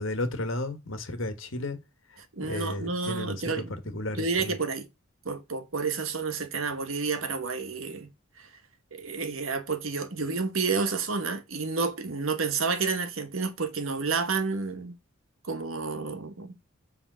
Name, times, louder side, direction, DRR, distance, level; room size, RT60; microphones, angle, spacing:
voice 1, 0.0-1.8 2.4-4.6, left 2 dB, 70° left, 1.5 m, -33 dB
voice 2, 2.3-3.8 4.1-4.9 5.2-8.1 8.4-8.5 8.9-14.9 15.4-16.6, right 4 dB, 80° right, 1.3 m, -30 dB
7.9 x 3.5 x 6.1 m
head